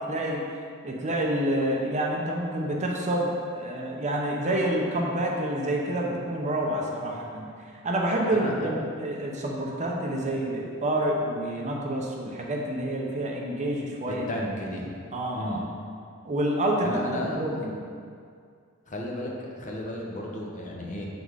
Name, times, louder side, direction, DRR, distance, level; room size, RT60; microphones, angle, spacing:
voice 1, 0.1-0.4 0.8-7.5 7.8-14.4 15.1-15.6 16.2-17.8, right 1 dB, 35° right, -1 dB, 0.7 m, -28 dB
voice 2, 8.3-8.7 14.1-14.9 15.3-15.6 16.8-17.4 18.9-21.1, left 1 dB, 35° left, -2 dB, 0.9 m, -33 dB
6.8 x 4.0 x 4.7 m, 2.2 s
head